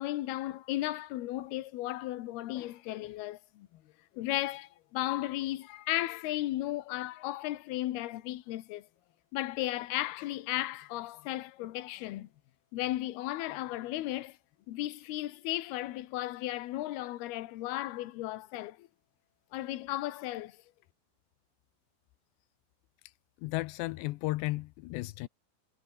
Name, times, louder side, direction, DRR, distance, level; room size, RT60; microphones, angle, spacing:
voice 1, 0.0-3.8 4.1-8.9 9.3-12.3 12.7-14.4 14.7-18.9 19.5-20.6, left 16 dB, 70° left, 3.1 m, -35 dB
voice 2, 23.4-25.3, left 20 dB, 85° left, 2.9 m, -34 dB
omnidirectional pair, 4.9 m